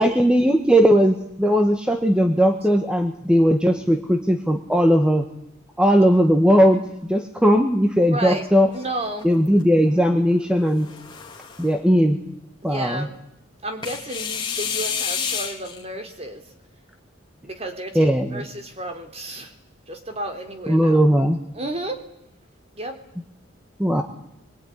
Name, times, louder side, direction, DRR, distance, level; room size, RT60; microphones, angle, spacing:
voice 1, 0.0-5.2 5.8-6.8 7.1-8.7 9.2-10.9 11.6-12.2 12.6-13.1 17.9-18.4 20.7-21.4 23.8-24.0, equal, 5° right, 5 dB, 1.5 m, -18 dB
voice 2, 8.1-8.4 8.7-9.3 12.6-13.2 13.6-16.4 17.4-19.5 19.9-21.0 21.5-22.0 22.8-23.0, right 1 dB, 30° right, 6 dB, 3.5 m, -32 dB
sound 1, 8.7-9.6 10.6-11.8 13.8-15.8, left 6 dB, 25° left, 3.5 m, -30 dB
25.0 x 22.5 x 10.0 m, 0.78 s
head